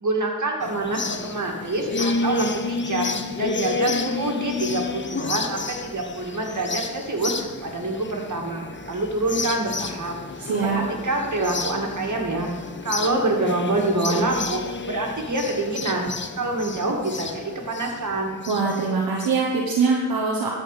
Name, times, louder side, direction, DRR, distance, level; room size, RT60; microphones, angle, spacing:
voice 1, 0.0-10.1 10.6-16.1 16.4-18.4, right 2 dB, 55° right, 1 dB, 2.3 m, -26 dB
sound 1, 0.6-19.4, left 4 dB, 35° left, 0.8 m, -31 dB
voice 2, 10.4-10.8 18.5-20.5, right 4 dB, 85° right, -2 dB, 1.3 m, -23 dB
13.5 x 5.2 x 5.1 m, 1.3 s
cardioid pair, 40°, 35 cm